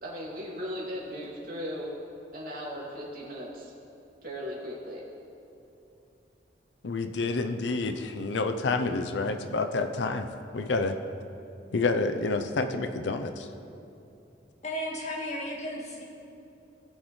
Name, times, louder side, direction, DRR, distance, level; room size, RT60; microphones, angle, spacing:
voice 1, 0.0-1.9 2.3-3.7 4.2-5.1, equal, 55° right, -5 dB, 2.4 m, -37 dB
voice 2, 6.8-10.3 10.5-11.0 11.7-13.5, left 3 dB, 85° left, 7 dB, 0.6 m, -28 dB
voice 3, 14.6-16.0, equal, 40° left, -3 dB, 1.7 m, -34 dB
19.0 x 6.4 x 3.2 m, 2.7 s
head